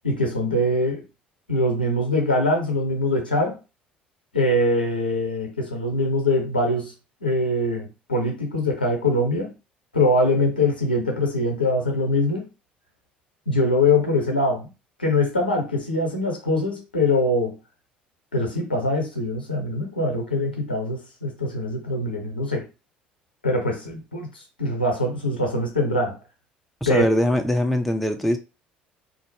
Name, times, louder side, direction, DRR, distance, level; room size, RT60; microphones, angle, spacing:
voice 1, 0.0-1.0 1.5-3.6 4.3-6.9 7.2-9.5 9.9-12.5 13.5-14.7 15.0-17.6 18.3-22.7 23.4-24.3 24.6-26.2 26.9-27.0, left 1 dB, 85° left, 0.7 m, -23 dB
voice 2, 26.8-28.4, left 1 dB, ahead, 0.5 m, -21 dB
2.5 x 2.0 x 3.3 m
figure-of-eight pair, 60°, 5 cm